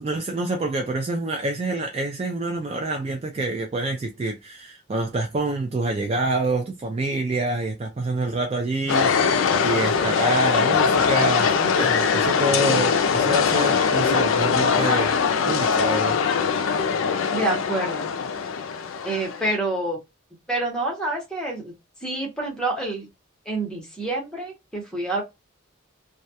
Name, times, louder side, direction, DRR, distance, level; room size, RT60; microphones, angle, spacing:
voice 1, 0.0-15.1 15.5-16.2, right 2 dB, 30° right, 0.3 m, -27 dB
sound 1, 8.9-19.6, left 6 dB, 75° left, 0.4 m, -22 dB
voice 2, 17.3-18.1 19.0-20.0 20.5-21.7 22.0-23.1 23.5-25.2, right 2 dB, 5° left, 0.8 m, -27 dB
2.2 x 2.2 x 2.7 m
head